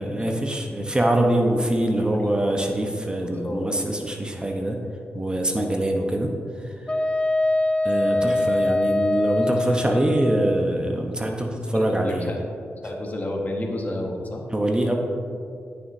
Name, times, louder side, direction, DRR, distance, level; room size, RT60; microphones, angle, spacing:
voice 1, 0.0-4.8 5.1-6.3 6.6-6.8 7.8-12.3 14.5-15.0, right 1 dB, 20° right, 2 dB, 1.0 m, -24 dB
voice 2, 2.2-2.7 3.4-3.7 8.1-8.3 11.5-12.4 12.8-14.5, left 1 dB, 40° left, 0 dB, 1.5 m, -32 dB
Wind instrument woodwind instrument, 6.9-10.4, left 2 dB, 25° left, 0.6 m, -23 dB
14.0 x 6.1 x 2.8 m, 2.4 s
cardioid pair, 55°, 5 cm